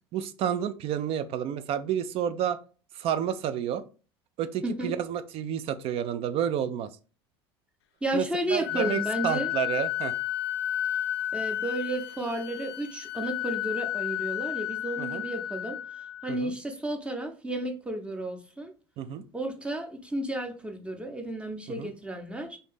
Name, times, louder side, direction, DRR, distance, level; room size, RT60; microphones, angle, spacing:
voice 1, 0.1-2.6 2.9-3.8 4.4-6.9 8.1-10.1 15.0-15.2 16.3-16.5 19.0-19.2 21.8-21.9, right 9 dB, 45° right, 0.4 m, -30 dB
voice 2, 4.6-4.9 8.0-9.5 11.3-15.8 16.2-18.7 19.3-22.6, right 1 dB, 10° right, 0.7 m, -32 dB
Wind instrument woodwind instrument, 8.6-16.4, left 13 dB, 80° left, 0.4 m, -32 dB
2.7 x 2.6 x 3.5 m
hypercardioid pair, 85°, 13 cm